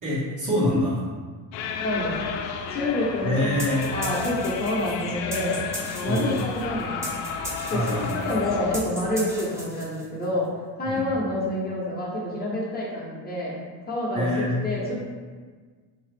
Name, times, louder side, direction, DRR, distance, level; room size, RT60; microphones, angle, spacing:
voice 1, 0.0-1.1 3.2-3.8 6.1-6.3 7.7-8.5 10.8-11.1 14.1-14.6, left 1 dB, 45° right, -9 dB, 1.5 m, -25 dB
sound 1, 1.5-8.8, left 6 dB, 85° left, 0.5 m, -32 dB
voice 2, 1.8-2.3 2.7-3.5 3.9-5.6 6.0-7.2 7.7-10.5 10.8-13.6 13.9-14.3 14.6-15.0, left 1 dB, 20° left, -5 dB, 1.0 m, -28 dB
sound 2, 3.6-10.3, right 1 dB, 5° right, 0.6 m, -38 dB
3.9 x 2.9 x 3.4 m, 1.5 s
cardioid pair, 115°, 43 cm